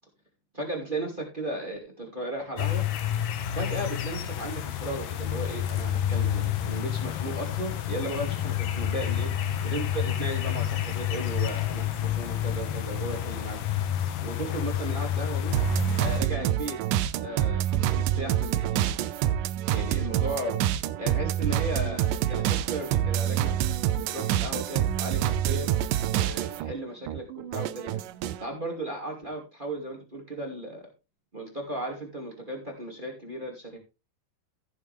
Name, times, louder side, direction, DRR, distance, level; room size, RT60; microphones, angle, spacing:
voice 1, 0.5-2.8 3.5-13.6 14.2-15.5 16.0-16.8 17.2-18.9 19.7-20.5 21.0-23.6 24.0-25.7 26.1-28.0 28.4-30.9 31.3-33.8, right 1 dB, 15° right, 1 dB, 2.0 m, -35 dB
sound 1, 2.6-16.2, left 10 dB, 70° left, 2.4 m, -29 dB
sound 2, 15.5-26.7 27.1-28.5, right 11 dB, 80° right, 1.9 m, -27 dB
15.0 x 7.0 x 3.4 m, 0.29 s
omnidirectional pair, 4.5 m